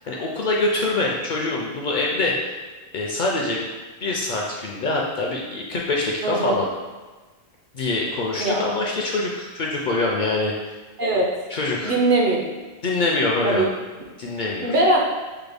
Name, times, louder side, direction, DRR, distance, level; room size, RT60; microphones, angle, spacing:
voice 1, 0.0-2.4 2.9-3.6 4.0-6.7 7.7-10.8 11.5-12.0 12.8-13.6 14.2-14.8, left 2 dB, 60° left, -1 dB, 0.6 m, -24 dB
voice 2, 6.2-6.6 8.4-8.6 11.0-11.3 11.8-12.4 13.4-13.7 14.6-15.0, right 2 dB, 60° right, -1 dB, 0.7 m, -20 dB
4.7 x 2.2 x 3.3 m, 1.3 s
omnidirectional pair, 1.1 m